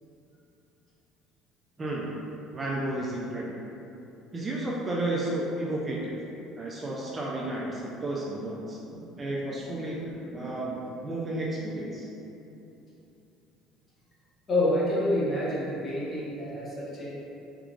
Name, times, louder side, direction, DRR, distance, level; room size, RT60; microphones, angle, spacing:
voice 1, 1.8-2.2 2.5-3.5 4.3-6.2 6.6-8.8 9.2-10.0 10.3-10.7 11.0-12.1, right 1 dB, 20° right, -4 dB, 0.4 m, -32 dB
voice 2, 8.9-9.2 9.6-10.6 14.5-17.1, left 1 dB, 30° left, -7 dB, 1.0 m, -29 dB
3.8 x 3.6 x 2.4 m, 2.9 s
cardioid pair, 135°, 0 cm